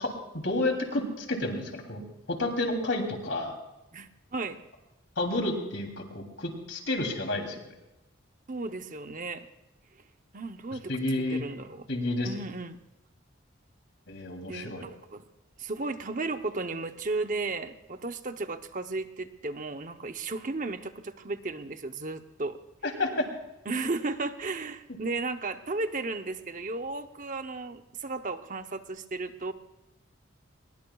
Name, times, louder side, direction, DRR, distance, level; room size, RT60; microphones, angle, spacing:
voice 1, 0.0-2.0 2.3-3.5 5.2-7.6 10.9-11.4 11.9-12.3 14.1-14.8 22.8-23.2, left 2 dB, 65° left, 3 dB, 3.1 m, -30 dB
voice 2, 3.9-4.6 8.5-9.5 10.3-11.9 12.2-12.8 14.5-15.2 15.6-22.6 23.7-29.5, right 3 dB, 40° right, 8 dB, 0.8 m, -34 dB
23.0 x 21.5 x 2.4 m, 0.96 s
head